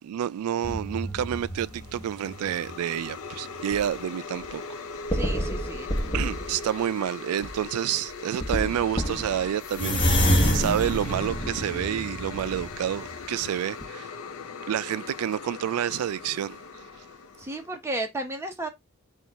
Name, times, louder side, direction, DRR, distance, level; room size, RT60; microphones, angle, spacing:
voice 1, 0.0-4.8 6.1-14.1 14.7-16.6, right 10 dB, 90° right, 0.3 m, -29 dB
sound 1, 0.6-2.7 3.3-3.9 4.4-4.5 5.1-6.7 7.4-7.6 8.1-8.2 8.4-13.5 13.8-13.9, equal, 25° left, 1.0 m, -28 dB
sound 2, 1.4-17.8, left 5 dB, 70° left, 0.6 m, -40 dB
voice 2, 5.1-5.9 17.4-18.7, right 1 dB, 10° right, 0.8 m, -33 dB
4.5 x 2.4 x 3.9 m
head